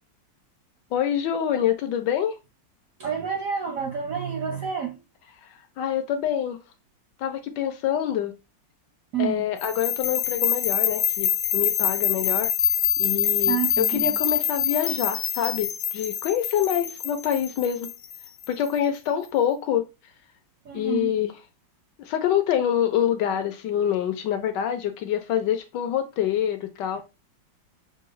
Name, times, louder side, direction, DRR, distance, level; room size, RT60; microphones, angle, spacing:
voice 1, 0.9-2.3 5.4-5.5 5.8-6.6 7.2-8.3 9.2-12.5 13.0-17.9 18.5-19.8 20.7-21.3 22.0-27.0, left 10 dB, 75° left, 1.1 m, -26 dB
voice 2, 3.0-5.0 9.1-9.5 13.5-14.2 20.6-21.2, right 7 dB, 70° right, 0.8 m, -29 dB
sound 1, 9.6-18.7, left 9 dB, 90° left, 0.7 m, -25 dB
5.9 x 2.3 x 3.0 m
omnidirectional pair, 2.1 m